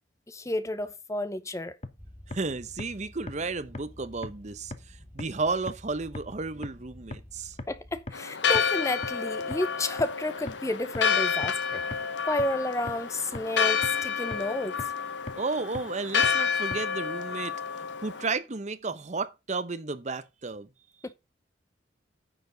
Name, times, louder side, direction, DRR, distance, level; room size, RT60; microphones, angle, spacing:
voice 1, 0.3-1.8 7.7-12.0 12.3-14.8 21.0-21.1, left 1 dB, 15° left, 0.7 m, -31 dB
sound 1, 1.8-1.9 2.3-2.4 2.8-2.9 3.3-3.4 3.7-3.8 4.2-4.3 4.7-4.8 5.2-5.3 5.7-5.8 6.1-6.2 6.6-6.7 7.1-7.2 7.6-7.7 8.1-8.2 8.5-8.6 9.0-9.1 9.5-9.6 10.0-10.1 10.5-10.6 10.9-11.0 11.4-11.5 11.9-12.0 12.4-12.5 12.9-13.0 13.3-13.4 13.8-13.9 14.3-14.4 14.8-14.9 15.3-15.4 15.7-15.8 16.2-16.3 16.7-16.8, left 2 dB, 35° left, 1.0 m, -36 dB
sound 2, 2.0-8.0, left 1 dB, 10° right, 3.4 m, -51 dB
voice 2, 2.3-7.6 15.4-17.5 18.0-20.7, right 3 dB, 40° right, 0.8 m, -33 dB
Church bell, 8.1-18.3, left 6 dB, 85° left, 1.0 m, -29 dB
9.8 x 7.0 x 3.9 m
head